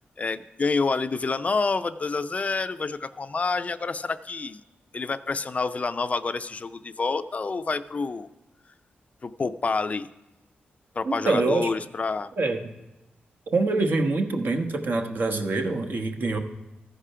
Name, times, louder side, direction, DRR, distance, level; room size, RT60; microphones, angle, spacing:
voice 1, 0.2-4.6 4.9-8.3 9.2-10.1 11.0-12.3, left 4 dB, 40° left, 12 dB, 0.4 m, -28 dB
voice 2, 11.0-11.7 12.4-12.7 13.5-16.4, right 3 dB, 60° right, 4 dB, 1.1 m, -25 dB
14.5 x 4.9 x 5.6 m, 0.99 s
cardioid pair, 95°, 4 cm